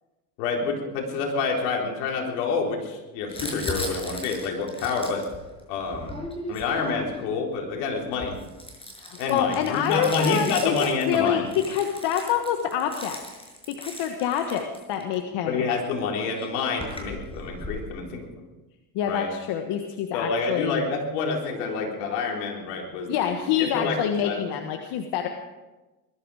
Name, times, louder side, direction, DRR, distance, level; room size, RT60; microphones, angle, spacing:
voice 1, 0.4-5.2 5.7-6.1 6.5-8.4 9.2-11.5 15.5-18.5 19.1-19.3 20.1-24.6, left 4 dB, 80° left, 0 dB, 4.1 m, -28 dB
Crumpling crinkling, 3.3-7.4 8.0-15.1 16.0-16.1 16.3-17.8, left 1 dB, 10° left, 6.4 m, -37 dB
voice 2, 9.0-13.2 13.7-15.6 18.9-20.8 23.1-25.3, left 9 dB, 65° left, 5 dB, 1.5 m, -26 dB
20.5 x 13.5 x 4.9 m, 1.1 s
supercardioid pair, 95°, 45 cm